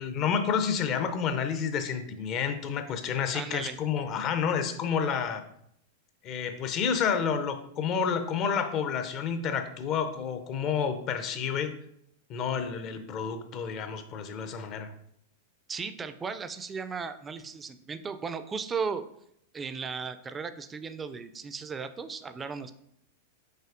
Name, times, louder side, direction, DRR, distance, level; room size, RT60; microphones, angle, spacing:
voice 1, 0.0-5.4 6.2-11.7 12.3-14.9, left 7 dB, 40° left, 8 dB, 0.5 m, -29 dB
voice 2, 3.3-3.8 15.7-19.1 19.5-22.7, right 5 dB, 20° right, 11 dB, 0.3 m, -36 dB
5.6 x 2.9 x 2.5 m, 0.72 s
hypercardioid pair, 100°, 0 cm